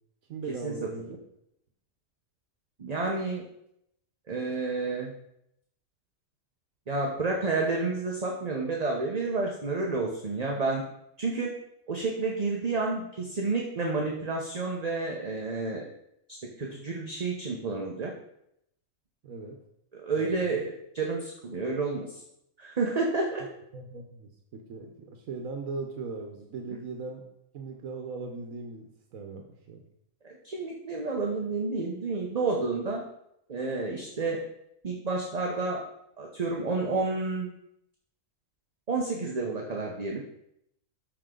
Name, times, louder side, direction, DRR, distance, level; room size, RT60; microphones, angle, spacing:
voice 1, 0.3-1.2 19.2-19.6 20.1-20.6 23.7-27.2 27.5-29.8, right 4 dB, 85° right, 3 dB, 1.3 m, -39 dB
voice 2, 2.8-3.4 4.3-5.1 6.9-10.8 11.2-11.5 11.9-15.9 16.3-18.1 19.9-22.2 22.6-23.4 30.2-33.0 33.5-34.4 34.8-35.8 36.2-37.5 38.9-40.2, right 3 dB, 35° right, -1 dB, 0.9 m, -30 dB
13.0 x 4.7 x 3.8 m, 0.78 s
omnidirectional pair, 1.4 m